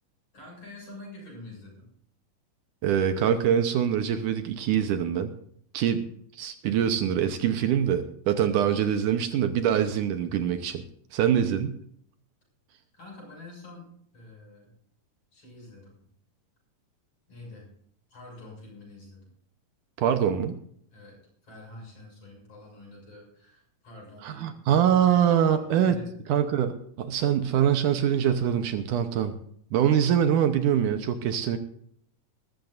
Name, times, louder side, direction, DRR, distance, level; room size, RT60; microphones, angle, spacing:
voice 1, 0.3-1.9 5.8-6.1 11.3-11.5 12.9-13.9 14.1-14.8 15.3-16.1 17.3-17.7 18.1-19.2 20.9-21.2 21.4-24.9 25.4-26.2, left 2 dB, 45° left, -1 dB, 8.1 m, -47 dB
voice 2, 2.8-5.3 5.7-6.0 6.3-10.8 11.1-11.7 20.0-20.6 24.2-26.0 26.3-29.3 29.7-31.6, right 9 dB, 75° right, 8 dB, 2.4 m, -24 dB
21.0 x 13.0 x 2.6 m, 0.65 s
omnidirectional pair, 3.9 m